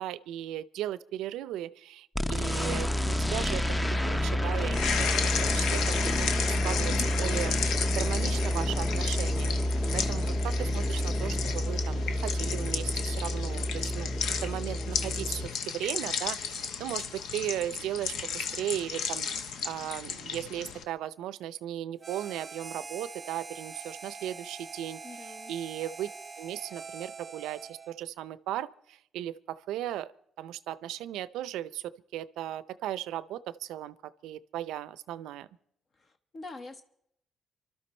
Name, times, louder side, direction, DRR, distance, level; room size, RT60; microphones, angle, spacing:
voice 1, 0.0-3.8 4.0-5.8 6.2-7.6 7.9-9.5 9.9-14.1 14.4-26.1 26.4-30.1 30.4-35.5, right 12 dB, 90° right, 0.5 m, -37 dB
sound 1, 2.2-15.5, left 1 dB, 15° left, 0.7 m, -29 dB
sound 2, 4.7-20.8, left 6 dB, 80° left, 1.1 m, -34 dB
Harmonica, 22.0-28.0, right 4 dB, 35° right, 0.7 m, -44 dB
voice 2, 25.0-25.5 36.0-36.8, left 3 dB, 45° left, 1.1 m, -45 dB
25.5 x 12.5 x 4.3 m
cardioid pair, 90°, 0 cm